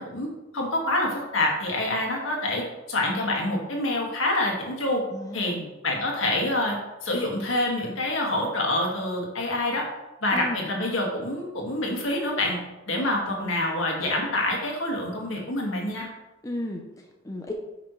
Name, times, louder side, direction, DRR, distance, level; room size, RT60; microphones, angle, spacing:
voice 1, 0.0-5.0 5.3-5.5 5.8-6.8 7.0-9.9 10.2-12.6 12.9-16.1, left 1 dB, 70° left, 0 dB, 2.0 m, -26 dB
voice 2, 5.1-5.7 10.3-10.7 13.2-13.7 16.4-17.5, left 1 dB, 15° left, 1 dB, 0.7 m, -35 dB
9.8 x 5.9 x 3.2 m, 1.0 s
head